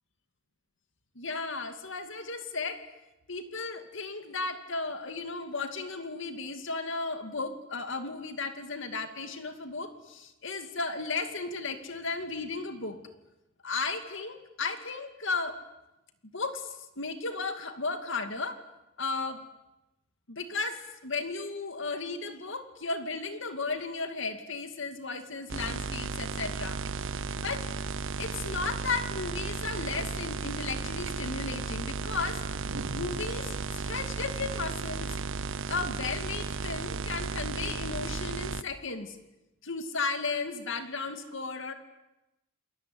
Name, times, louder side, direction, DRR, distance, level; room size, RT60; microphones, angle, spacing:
voice 1, 1.2-2.8 3.3-13.0 13.6-15.6 16.3-18.6 19.0-19.4 20.3-27.7 28.2-32.4 32.9-35.2 35.7-39.2 39.6-41.7, left 4 dB, 65° left, 8 dB, 2.4 m, -35 dB
sound 1, 25.5-38.6, right 4 dB, 65° right, 0.9 m, -34 dB
29.0 x 21.5 x 9.5 m, 0.95 s
head